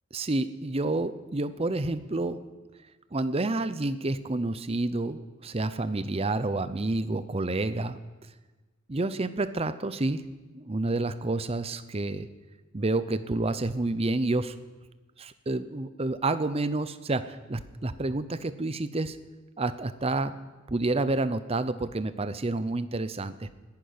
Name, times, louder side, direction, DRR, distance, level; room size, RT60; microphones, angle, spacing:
voice 1, 0.1-2.4 3.1-8.0 8.9-10.2 10.5-12.3 12.7-14.6 15.2-19.2 19.6-20.3 20.7-23.6, right 2 dB, 30° right, 13 dB, 0.6 m, -29 dB
10.5 x 10.5 x 9.5 m, 1.2 s
head